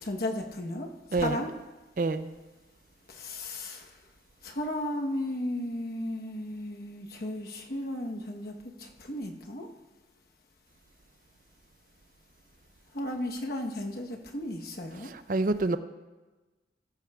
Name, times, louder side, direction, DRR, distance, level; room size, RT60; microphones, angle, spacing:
voice 1, 0.0-1.5 3.1-3.9 4.4-8.5 8.8-9.7 12.9-15.1, left 1 dB, 55° left, 2 dB, 1.1 m, -34 dB
voice 2, 2.0-2.3 15.0-15.8, right 3 dB, 45° right, 11 dB, 0.4 m, -27 dB
14.5 x 14.0 x 2.3 m, 1.2 s
head